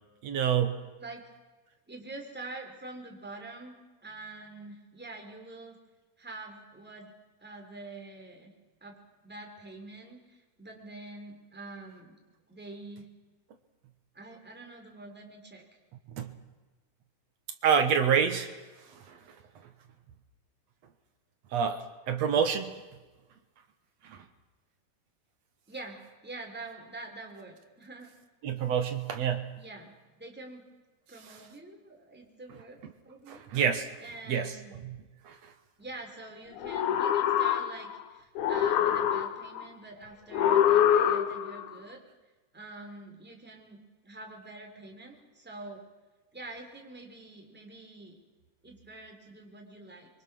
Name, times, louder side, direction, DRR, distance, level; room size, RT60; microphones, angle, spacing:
voice 1, 0.2-0.8 16.2-16.3 17.6-18.5 21.5-22.8 24.1-24.2 28.4-29.5 33.3-33.9 34.3-34.5, right 7 dB, 60° right, 7 dB, 2.0 m, -27 dB
voice 2, 1.9-3.8 4.0-5.8 6.2-8.5 8.8-12.2 12.5-13.1 14.1-15.6 25.7-28.1 29.5-30.7 31.1-33.4 34.0-34.7 35.8-42.0 42.5-45.8 46.3-48.2 48.6-50.1, right 2 dB, 5° right, 1 dB, 2.9 m, -46 dB
sound 1, 36.6-38.0 38.4-39.6 40.3-41.6, left 10 dB, 70° left, 2.2 m, -25 dB
25.0 x 23.5 x 6.2 m, 1.2 s
omnidirectional pair, 4.1 m